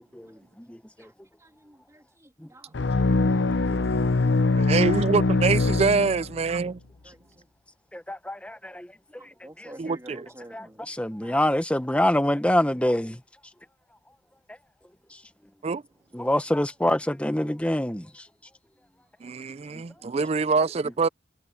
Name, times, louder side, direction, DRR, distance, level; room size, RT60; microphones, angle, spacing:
voice 1, 0.1-1.1 2.4-2.5 3.4-3.8 7.9-8.9 9.2-9.3 9.6-9.7 10.5-13.2 16.1-18.3 19.7-19.8, left 1 dB, 5° left, 0.9 m, -26 dB
voice 2, 1.4-2.8 6.2-6.3 6.6-6.8 7.0-7.5 9.1-10.9 11.2-11.4, right 1 dB, 15° right, 2.8 m, -50 dB
sound 1, 2.7-6.6, left 3 dB, 70° left, 0.7 m, -23 dB
voice 3, 4.6-6.8 9.8-10.3 15.6-15.8 19.2-21.1, right 4 dB, 35° right, 0.4 m, -25 dB
head